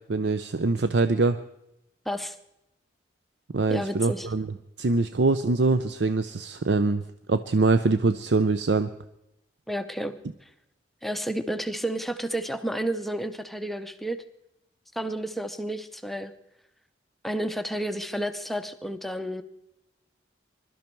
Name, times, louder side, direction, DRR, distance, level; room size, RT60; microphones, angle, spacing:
voice 1, 0.1-1.4 3.5-7.0 7.3-8.9, right 3 dB, 65° right, 11 dB, 0.6 m, -24 dB
voice 2, 2.1-2.4 3.7-4.3 9.7-10.5 11.0-14.2 14.9-16.3 17.2-19.4, right 1 dB, ahead, 9 dB, 0.6 m, -31 dB
21.5 x 12.5 x 4.5 m, 0.85 s
head